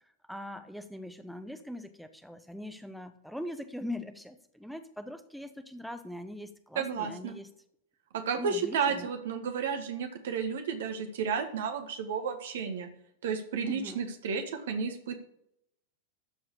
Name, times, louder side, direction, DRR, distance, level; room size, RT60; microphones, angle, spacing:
voice 1, 0.3-7.5 8.4-9.1 13.6-14.0, left 1 dB, ahead, 9 dB, 1.0 m, -41 dB
voice 2, 6.7-7.3 8.1-12.9 13.2-15.2, right 6 dB, 60° right, 7 dB, 1.6 m, -32 dB
13.0 x 4.7 x 8.5 m, 0.76 s
figure-of-eight pair, 90°, 0 cm